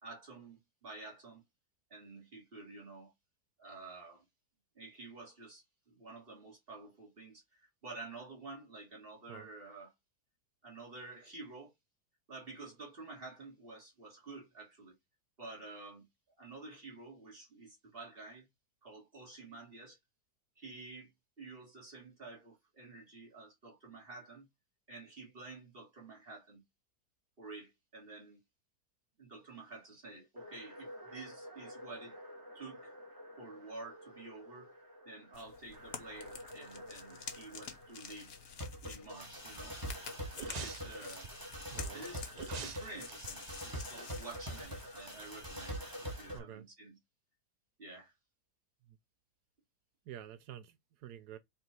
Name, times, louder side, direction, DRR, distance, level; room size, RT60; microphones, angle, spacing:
voice 1, 0.0-1.4 1.9-3.1 3.6-4.2 4.7-9.9 10.6-11.7 12.3-15.0 15.4-16.1 16.4-18.5 18.8-20.0 20.6-21.1 21.4-24.5 24.9-26.6 27.4-28.4 29.2-32.2 32.5-32.9 33.4-34.7 35.0-38.3 38.8-39.8 40.4-41.3 41.9-42.2 42.6-47.0 47.8-48.1, right 3 dB, 35° right, 3.2 m, -50 dB
sound 1, 30.4-46.4, equal, 15° right, 1.9 m, -46 dB
sound 2, 35.3-46.3, left 7 dB, 60° left, 1.4 m, -50 dB
sound 3, 40.3-41.5 42.3-44.8 45.1-45.2, right 6 dB, 65° right, 0.4 m, -47 dB
voice 2, 41.7-42.1 46.3-46.7 48.9-49.0 50.1-51.4, right 11 dB, 90° right, 1.3 m, -49 dB
5.8 x 3.6 x 4.5 m
omnidirectional pair, 1.7 m